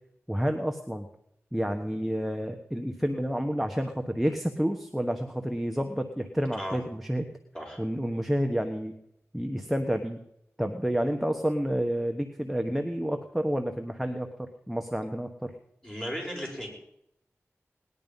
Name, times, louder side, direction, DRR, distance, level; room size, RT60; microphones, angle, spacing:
voice 1, 0.3-1.1 1.5-7.3 7.8-8.9 9.3-10.2 10.6-15.5, equal, ahead, 5 dB, 1.2 m, -29 dB
voice 2, 15.8-16.7, equal, 15° left, -2 dB, 6.5 m, -35 dB
19.0 x 11.0 x 5.5 m, 0.77 s
wide cardioid pair, 75°, 5 cm